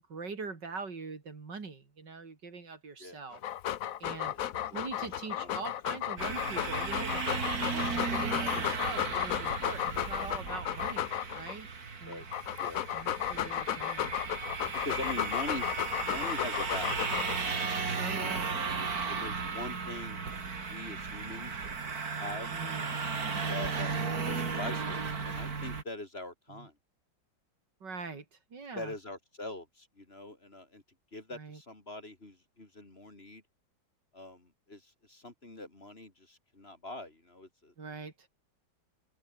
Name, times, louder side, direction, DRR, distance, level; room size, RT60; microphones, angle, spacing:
voice 1, 0.1-3.4 4.0-4.3 4.7-11.7 12.0-12.2 12.9-14.1 18.0-18.5 22.5-22.9 23.3-23.4 24.0-24.1 26.5-26.7 27.8-29.0 31.3-31.6 37.8-38.3, right 4 dB, 70° right, 3.7 m, -43 dB
Dog, 3.3-11.5 12.1-17.5, left 11 dB, 60° left, 1.0 m, -34 dB
sound 1, 6.2-25.8, right 5 dB, 50° right, 2.9 m, -35 dB
voice 2, 14.8-15.7 16.0-17.0 17.4-18.1 19.1-20.2 20.7-21.7 22.2-22.5 23.5-24.0 24.3-26.7 28.7-30.8 31.1-33.4 34.1-37.7, left 2 dB, 30° left, 3.5 m, -43 dB
open air
omnidirectional pair, 2.0 m